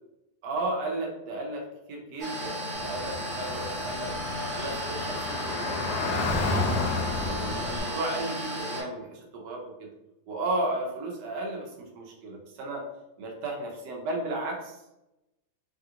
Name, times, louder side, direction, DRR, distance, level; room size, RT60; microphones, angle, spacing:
voice 1, 0.4-4.1 4.5-6.5 7.2-9.9 10.3-12.9 13.2-14.8, right 2 dB, 85° right, 0 dB, 1.3 m, -34 dB
sound 1, 2.2-8.8, equal, 65° right, 1.3 m, -34 dB
Car / Traffic noise roadway noise, 2.7-7.8, left 3 dB, 75° left, 1.1 m, -31 dB
3.3 x 2.4 x 2.7 m, 0.94 s
omnidirectional pair, 1.8 m